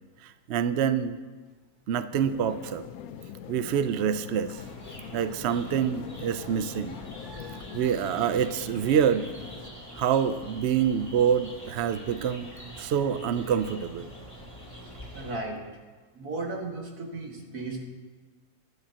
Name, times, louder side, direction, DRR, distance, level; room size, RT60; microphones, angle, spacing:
voice 1, 0.2-1.2 1.9-2.8 3.5-4.6 5.1-7.0 7.7-9.3 10.0-12.5 12.8-14.1, right 8 dB, 60° right, 12 dB, 0.7 m, -26 dB
sound 1, 2.1-9.7, left 9 dB, 75° left, 1.1 m, -43 dB
sound 2, 4.5-15.4, equal, 10° left, 2.5 m, -45 dB
voice 2, 7.1-7.9 15.1-15.6 16.1-17.8, right 2 dB, 90° right, 0 dB, 2.4 m, -36 dB
22.5 x 11.0 x 2.9 m, 1.3 s
omnidirectional pair, 1.6 m